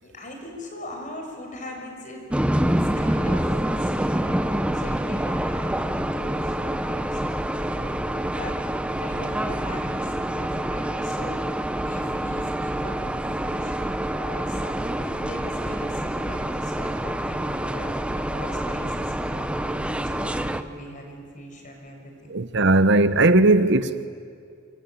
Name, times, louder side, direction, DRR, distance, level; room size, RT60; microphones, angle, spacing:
voice 1, 0.0-2.2 2.9-8.6 9.0-11.4 11.9-22.4, left 1 dB, 40° left, 6.1 m, -40 dB
sound 1, 2.3-20.6, right 1 dB, 5° right, 0.8 m, -27 dB
voice 2, 22.3-24.1, right 2 dB, 65° right, 1.1 m, -18 dB
27.5 x 22.0 x 9.3 m
head